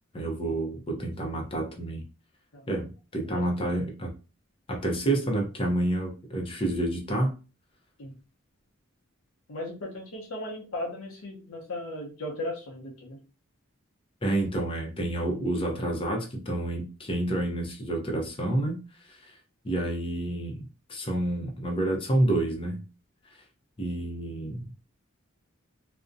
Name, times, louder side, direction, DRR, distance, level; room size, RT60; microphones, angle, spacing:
voice 1, 0.1-2.0 2.7-4.1 4.7-7.3 14.2-18.8 19.1-19.2 19.6-20.6 20.9-22.8 23.8-24.6, right 1 dB, 25° left, 1 dB, 0.5 m, -29 dB
voice 2, 3.3-3.7 8.0-8.1 9.5-13.2, left 1 dB, 80° left, -1 dB, 0.6 m, -37 dB
2.5 x 2.1 x 2.4 m, 0.33 s
head